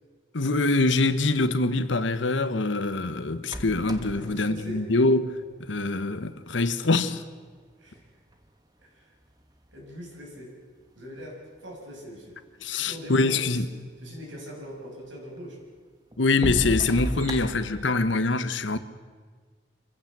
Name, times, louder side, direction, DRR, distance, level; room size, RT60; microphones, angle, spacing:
voice 1, 0.3-5.3 5.6-7.2 12.6-13.7 16.2-18.8, left 3 dB, 75° left, 1.1 m, -24 dB
sound 1, 3.4-5.7 6.8-6.9 7.5-8.6 9.3-10.1 10.9-11.0 11.2-11.3 11.9-12.0 12.3-13.0 14.6-14.7 15.4-15.5 16.1-18.0, right 1 dB, 20° right, 1.3 m, -35 dB
voice 2, 4.1-4.9 7.8-8.0 8.8-9.1 9.7-10.5 10.9-12.4 12.8-13.6 14.0-15.6, equal, 80° right, 6.5 m, -41 dB
26.0 x 15.5 x 7.4 m
head